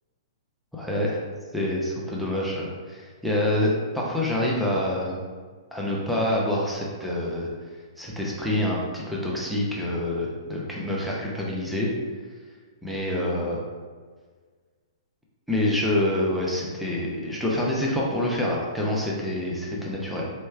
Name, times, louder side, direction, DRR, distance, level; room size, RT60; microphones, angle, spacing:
voice 1, 0.7-1.2 1.5-5.2 5.7-7.5 8.0-11.9 12.8-13.6 15.5-20.3, left 1 dB, ahead, -5 dB, 0.8 m, -26 dB
4.6 x 3.2 x 3.3 m, 1.5 s
figure-of-eight pair, 115°, 3 cm